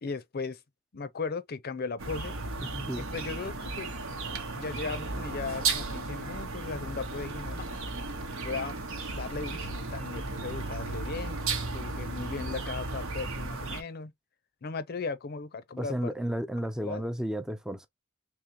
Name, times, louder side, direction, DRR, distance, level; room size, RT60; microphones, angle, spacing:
voice 1, 0.0-0.6 0.9-2.3 3.0-4.0 4.5-7.7 8.4-8.7 9.1-11.4 11.7-14.1 14.6-16.1 16.8-17.1, left 4 dB, 50° left, 0.6 m, -37 dB
sound 1, 2.0-13.8, right 3 dB, 75° right, 1.0 m, -35 dB
voice 2, 2.6-3.0 15.8-17.9, equal, 5° right, 0.4 m, -33 dB
3.7 x 3.3 x 2.9 m
head